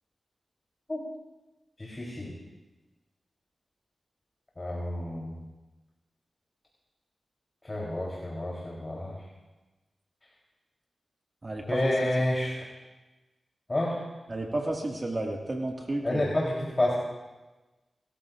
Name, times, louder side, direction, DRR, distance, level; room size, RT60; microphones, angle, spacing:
voice 1, 1.8-2.3 4.6-5.4 7.6-9.2 11.6-12.7 13.7-14.0 16.0-16.9, left 1 dB, 35° left, -3 dB, 3.5 m, -29 dB
voice 2, 11.4-11.8 14.3-16.3, right 2 dB, 35° right, 0 dB, 1.9 m, -32 dB
28.0 x 14.0 x 2.5 m, 1.1 s
cardioid pair, 55°, 0 cm